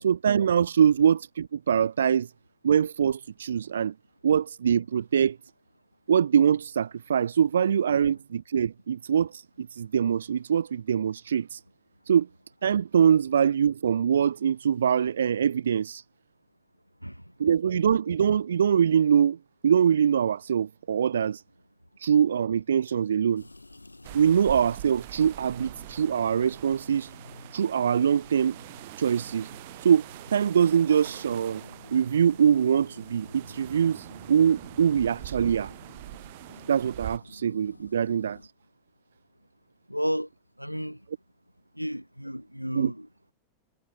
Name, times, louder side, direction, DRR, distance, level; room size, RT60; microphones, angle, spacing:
voice 1, 0.0-2.3 2.6-3.9 4.2-5.4 6.1-11.6 12.1-12.3 12.6-16.0 17.4-19.4 19.6-21.4 22.0-23.4 24.1-27.1 27.5-28.6 29.0-29.5 29.8-31.6 31.9-35.7 36.7-38.4 42.7-42.9, right 8 dB, 65° right, 0.3 m, -23 dB
sound 1, 23.4-38.5, left 2 dB, 85° left, 2.7 m, -50 dB
sound 2, 24.0-37.2, right 20 dB, 50° right, 1.7 m, -44 dB
voice 2, 39.9-40.3 40.6-41.0 41.8-43.1, equal, 90° right, 2.4 m, -32 dB
figure-of-eight pair, 90°, 0 cm